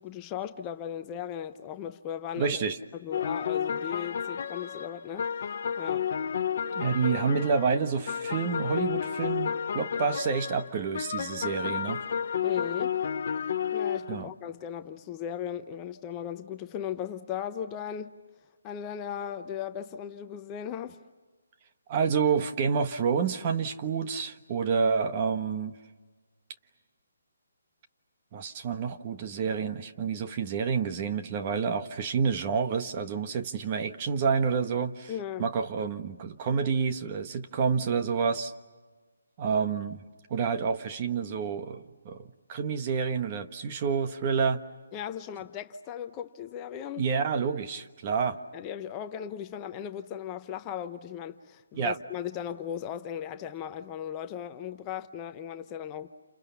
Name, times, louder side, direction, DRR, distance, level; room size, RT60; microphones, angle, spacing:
voice 1, 0.0-2.6 2.9-5.3 5.8-6.1 12.4-13.0 13.7-18.2 18.6-21.0 35.1-35.4 44.9-47.1 48.5-56.1, left 9 dB, 20° left, 7 dB, 0.8 m, -37 dB
voice 2, 2.4-2.8 6.7-12.0 14.1-14.3 21.9-25.8 28.3-35.1 35.4-38.5 39.4-40.0 40.3-44.6 47.0-48.4 51.7-52.0, right 6 dB, 30° right, 7 dB, 1.3 m, -28 dB
sound 1, 3.1-7.8 8.1-14.2, left 7 dB, 50° left, 1.0 m, -31 dB
29.5 x 28.0 x 7.1 m, 1.3 s
hypercardioid pair, 160°, 0 cm